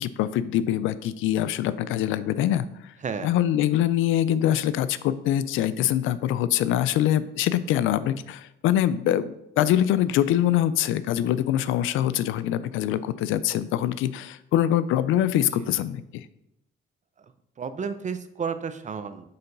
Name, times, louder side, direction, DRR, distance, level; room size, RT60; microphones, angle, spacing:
voice 1, 0.0-2.7 3.2-16.2, left 11 dB, 90° left, 15 dB, 0.4 m, -24 dB
voice 2, 3.0-3.3 15.5-15.7 17.6-19.3, right 6 dB, 35° right, 11 dB, 0.7 m, -32 dB
6.7 x 4.0 x 5.3 m, 0.83 s
cardioid pair, 90°, 20 cm